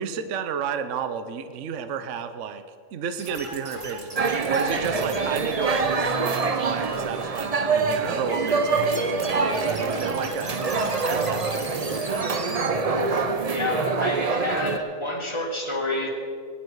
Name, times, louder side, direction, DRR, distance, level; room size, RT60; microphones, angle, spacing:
voice 1, 0.0-2.6 2.9-10.6 11.0-11.6, right 7 dB, 60° right, 9 dB, 0.9 m, -32 dB
sound 1, 3.2-12.7, right 2 dB, 20° right, 1.2 m, -38 dB
sound 2, 4.2-14.8, right 4 dB, 40° right, 0.6 m, -25 dB
voice 2, 12.8-16.1, left 2 dB, 20° left, 0 dB, 2.0 m, -29 dB
21.0 x 10.0 x 4.7 m, 2.4 s
omnidirectional pair, 1.6 m